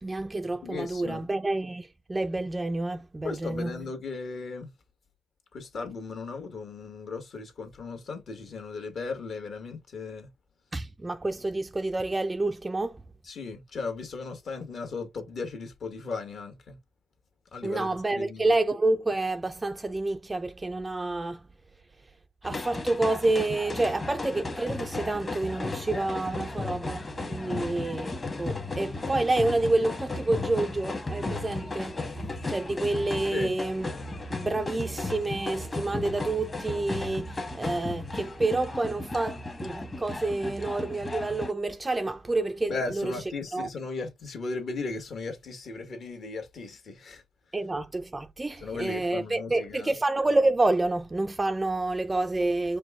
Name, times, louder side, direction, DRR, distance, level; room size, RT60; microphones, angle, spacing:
voice 1, 0.0-3.7 10.7-13.0 17.6-21.4 22.4-28.1 28.4-32.0 32.5-33.9 34.4-43.1 43.5-43.7 47.5-52.8, right 2 dB, 20° right, 0.4 m, -28 dB
voice 2, 0.6-1.2 3.2-4.7 5.5-10.3 13.2-16.8 17.5-18.5 27.4-27.7 33.3-33.6 42.7-47.2 48.6-49.9, left 4 dB, 55° left, 1.5 m, -36 dB
sound 1, 22.4-41.5, left 2 dB, 25° left, 1.2 m, -35 dB
5.0 x 2.2 x 3.6 m
cardioid pair, 90°, 0 cm